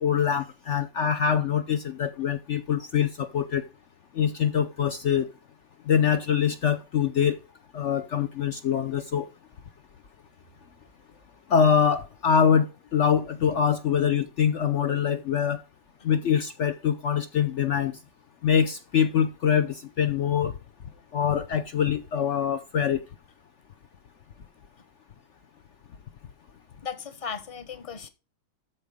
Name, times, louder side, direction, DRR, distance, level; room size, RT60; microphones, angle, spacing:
voice 1, 0.0-3.6 4.2-5.3 5.9-7.4 7.7-9.3 11.5-15.6 16.0-17.9 18.4-20.5 21.1-23.0, left 8 dB, 75° left, 0.6 m, -24 dB
voice 2, 26.8-28.1, left 6 dB, 25° left, 0.8 m, -36 dB
13.5 x 4.7 x 5.1 m
omnidirectional pair, 2.1 m